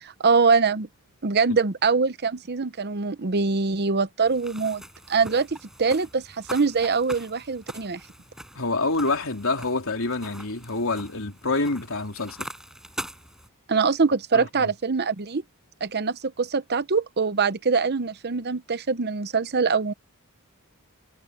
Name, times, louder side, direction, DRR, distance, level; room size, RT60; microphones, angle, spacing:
voice 1, 0.0-0.9 1.2-4.8 5.1-8.0 13.7-15.4 15.8-19.9, right 4 dB, 50° right, 0.8 m, -23 dB
sound 1, 4.2-13.5, equal, ahead, 6.5 m, -42 dB
voice 2, 8.6-12.5 14.3-14.7, left 3 dB, 65° left, 3.6 m, -27 dB
head